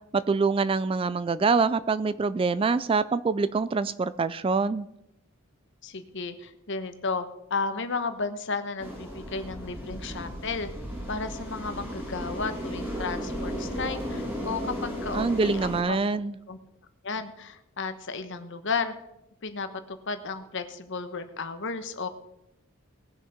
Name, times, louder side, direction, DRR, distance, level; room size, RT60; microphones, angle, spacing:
voice 1, 0.1-4.9 15.1-16.3, right 4 dB, 25° right, 15 dB, 0.3 m, -25 dB
voice 2, 5.8-10.7 11.1-16.0 16.5-16.6 17.0-18.9 19.4-22.1, left 4 dB, 60° left, 9 dB, 1.1 m, -33 dB
sound 1, 8.8-15.8, equal, 10° right, 2.4 m, -35 dB
19.0 x 6.4 x 5.1 m, 0.83 s
head